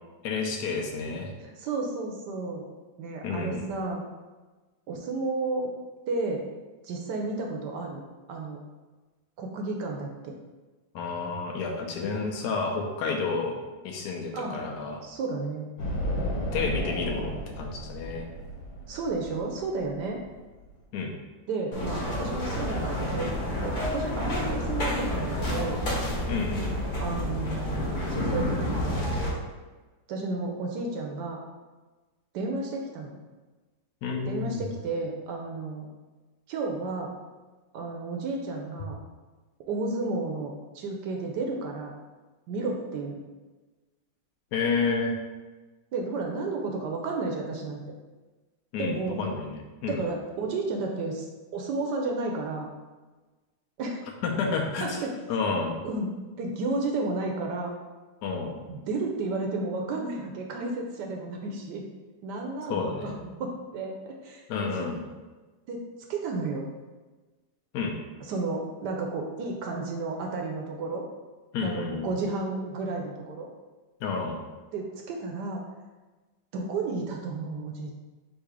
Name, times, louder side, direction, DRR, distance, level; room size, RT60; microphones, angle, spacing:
voice 1, 0.2-1.3 3.2-3.6 10.9-13.6 13.8-15.0 16.5-18.3 20.9-21.1 26.3-26.7 34.0-34.7 44.5-45.2 48.7-50.0 54.2-55.0 55.3-55.8 58.2-58.6 62.7-63.1 64.5-65.0 67.7-68.0 71.5-72.1 74.0-74.4, left 4 dB, 70° left, 2 dB, 1.2 m, -30 dB
voice 2, 1.4-2.7 3.0-4.0 4.9-5.7 6.1-6.4 6.8-8.0 8.3-8.6 9.4-10.4 14.3-14.6 15.0-15.6 18.9-20.2 21.5-23.3 23.6-25.8 27.0-29.1 30.1-31.4 32.3-33.2 34.3-35.9 36.5-37.1 37.7-39.0 39.7-41.9 42.5-43.2 45.9-47.8 48.8-49.2 49.9-51.3 51.5-52.7 53.8-54.0 54.8-55.1 55.8-56.1 56.4-57.8 58.7-61.8 62.2-64.4 64.8-65.0 65.7-66.7 68.3-71.0 71.6-73.5 74.7-75.6 76.5-77.9, right 3 dB, 75° right, 1 dB, 1.1 m, -32 dB
sound 1, 15.8-20.7, equal, 85° left, 1.8 m, -33 dB
sound 2, 21.7-29.3, left 1 dB, 35° left, 0.8 m, -29 dB
3.8 x 2.7 x 4.7 m, 1.3 s
omnidirectional pair, 2.0 m